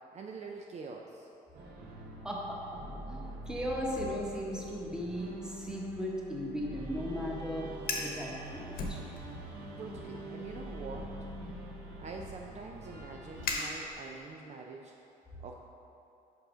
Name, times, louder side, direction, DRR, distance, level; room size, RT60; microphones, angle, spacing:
voice 1, 0.1-1.3 9.3-9.5 9.8-11.2 12.0-14.9 15.4-15.6, right 4 dB, 40° right, 1 dB, 0.5 m, -45 dB
sound 1, 1.5-13.6, right 1 dB, 70° right, 1.1 m, -45 dB
voice 2, 2.2-2.8 3.1-9.0, equal, 5° right, -3 dB, 1.2 m, -37 dB
Fire, 7.7-8.2 8.7-9.5 9.9-10.2 10.9-14.3, left 3 dB, 60° left, 1.1 m, -39 dB
5.8 x 5.6 x 5.0 m, 2.8 s
cardioid pair, 110°, 17 cm